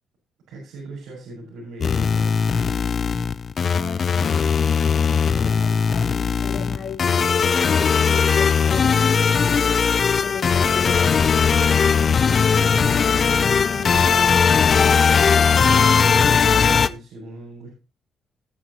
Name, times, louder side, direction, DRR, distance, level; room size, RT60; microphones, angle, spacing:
voice 1, 0.5-2.5 12.5-13.1 13.4-14.5 15.2-17.7, right 2 dB, 90° right, -3 dB, 5.9 m, -39 dB
sound 1, 1.8-16.9, left 6 dB, 45° left, 0.7 m, -19 dB
voice 2, 3.7-7.2 7.5-9.1 10.1-11.1, left 6 dB, 60° left, 1 dB, 1.5 m, -35 dB
19.0 x 7.1 x 3.0 m, 0.30 s
cardioid pair, 90°, 0 cm